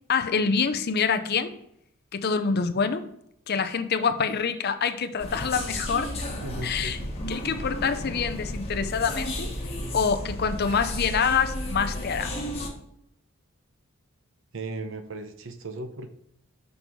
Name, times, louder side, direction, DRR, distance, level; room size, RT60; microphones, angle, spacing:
voice 1, 0.1-1.5 2.1-3.0 3.5-6.1 6.6-7.0 7.3-9.5 9.9-12.3, left 6 dB, 50° left, 9 dB, 0.6 m, -26 dB
sound 1, 5.2-12.7, left 1 dB, 30° left, 1.5 m, -33 dB
voice 2, 6.4-7.0 14.5-16.1, right 2 dB, 65° right, 8 dB, 0.8 m, -36 dB
6.2 x 5.4 x 4.6 m, 0.75 s
head